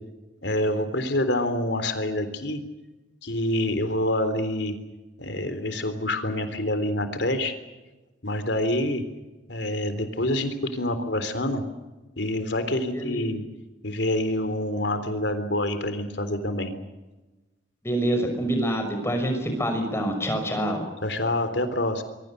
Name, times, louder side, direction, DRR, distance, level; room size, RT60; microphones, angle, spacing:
voice 1, 0.4-2.6 3.2-4.7 5.2-7.5 8.2-9.0 9.5-11.6 12.2-13.4 13.8-16.7 21.0-22.0, left 1 dB, 65° left, 10 dB, 3.6 m, -26 dB
voice 2, 12.9-13.2 17.8-20.8, right 1 dB, 15° left, 5 dB, 5.9 m, -26 dB
26.5 x 23.5 x 6.7 m, 1.1 s
head